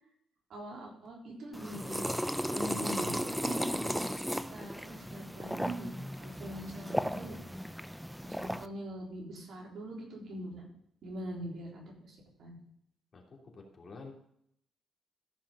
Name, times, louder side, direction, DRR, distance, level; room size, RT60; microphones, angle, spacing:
voice 1, 0.5-2.1 2.5-4.2 4.5-7.5 8.2-10.7 11.0-12.6, right 1 dB, 65° right, -1 dB, 3.8 m, -43 dB
sound 1, 1.5-8.7, equal, ahead, 0.5 m, -35 dB
voice 2, 13.1-14.1, left 4 dB, 40° left, 0 dB, 3.0 m, -49 dB
14.0 x 5.7 x 5.6 m, 0.73 s
cardioid pair, 90°, 0 cm